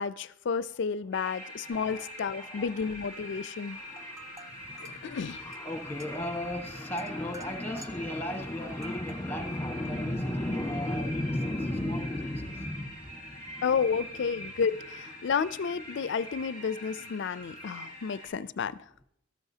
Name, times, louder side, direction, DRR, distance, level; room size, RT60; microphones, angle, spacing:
voice 1, 0.0-3.8 4.8-5.4 13.6-18.8, left 6 dB, 60° left, 17 dB, 0.4 m, -31 dB
sound 1, 1.1-18.3, left 1 dB, 50° right, 5.2 m, -44 dB
voice 2, 1.2-2.9 3.4-14.0 14.3-14.5, left 1 dB, 10° left, 5 dB, 1.3 m, -35 dB
sound 2, 3.1-3.5 3.8-8.2 8.7-9.3, right 1 dB, 15° right, 0.5 m, -52 dB
13.0 x 12.5 x 2.8 m, 0.75 s
head